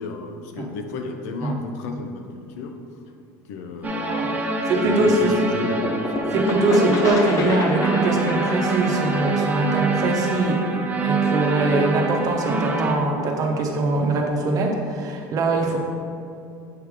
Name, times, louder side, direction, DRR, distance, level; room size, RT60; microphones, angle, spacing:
voice 1, 0.0-2.7 3.5-4.5 4.8-6.0 15.6-15.8, left 4 dB, 80° left, 5 dB, 0.7 m, -33 dB
sound 1, 3.8-12.9, right 3 dB, 20° right, 0.8 m, -25 dB
voice 2, 4.7-5.3 6.3-10.6 11.0-15.8, right 2 dB, 50° right, 1 dB, 1.1 m, -22 dB
sound 2, 5.8-11.4, left 3 dB, 45° left, 1.0 m, -29 dB
7.8 x 3.4 x 4.9 m, 2.6 s
supercardioid pair, 100°, 8 cm